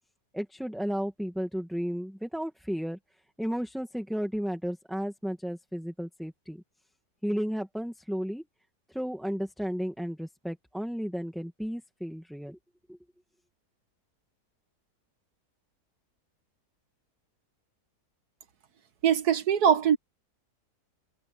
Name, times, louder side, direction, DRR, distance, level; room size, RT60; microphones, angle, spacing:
voice 1, 0.3-3.0 3.4-6.6 7.2-8.4 8.9-12.6 12.9-13.0, equal, ahead, 1.6 m, -33 dB
voice 2, 19.0-20.0, right 8 dB, 75° right, 1.9 m, -22 dB
omnidirectional pair, 1.7 m